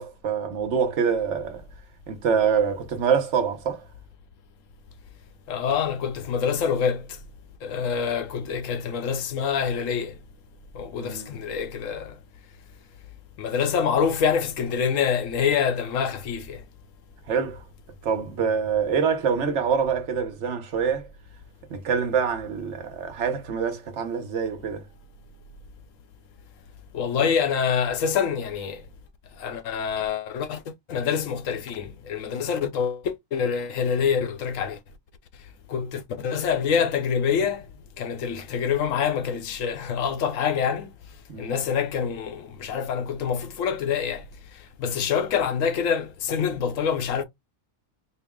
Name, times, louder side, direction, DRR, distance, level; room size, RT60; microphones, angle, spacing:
voice 1, 0.0-1.7 2.1-3.8 11.0-11.3 17.3-17.6 18.0-21.1 21.7-24.8 41.3-41.5, right 6 dB, 55° right, 1.1 m, -25 dB
voice 2, 5.5-7.1 7.6-10.2 10.7-12.2 13.4-16.6 26.9-28.8 29.4-30.6 30.9-34.8 35.7-37.7 38.0-40.9 41.4-44.2 44.8-47.2, left 7 dB, 70° left, 1.0 m, -26 dB
4.5 x 2.0 x 3.5 m
omnidirectional pair, 1.5 m